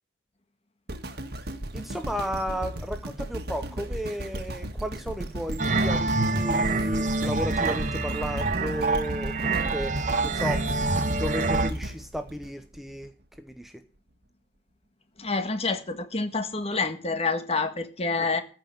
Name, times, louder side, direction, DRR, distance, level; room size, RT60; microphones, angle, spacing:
sound 1, 0.9-13.1 13.6-13.7, right 1 dB, 60° right, 1.5 m, -36 dB
voice 1, 1.7-10.7 11.2-13.1 13.4-13.7 18.2-18.3, equal, ahead, 0.8 m, -34 dB
sound 2, 5.6-11.7, right 3 dB, 45° right, 1.1 m, -26 dB
voice 2, 15.2-18.4, left 3 dB, 35° left, 1.6 m, -28 dB
14.0 x 5.8 x 9.1 m
head